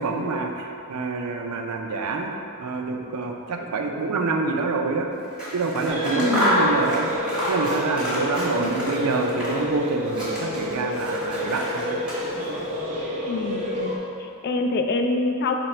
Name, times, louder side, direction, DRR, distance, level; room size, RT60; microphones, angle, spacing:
voice 1, 0.0-2.3 2.6-5.1 5.5-12.0, right 3 dB, 80° right, 3 dB, 0.4 m, -27 dB
Scissors, 5.2-9.8 10.0-12.6, equal, 5° right, 0.8 m, -29 dB
sound 1, 5.9-14.0, left 1 dB, 30° right, 0.5 m, -29 dB
voice 2, 6.1-6.6 8.6-8.8 13.3-15.5, left 3 dB, 45° left, 4 dB, 0.3 m, -26 dB
4.2 x 2.8 x 4.3 m, 2.6 s
head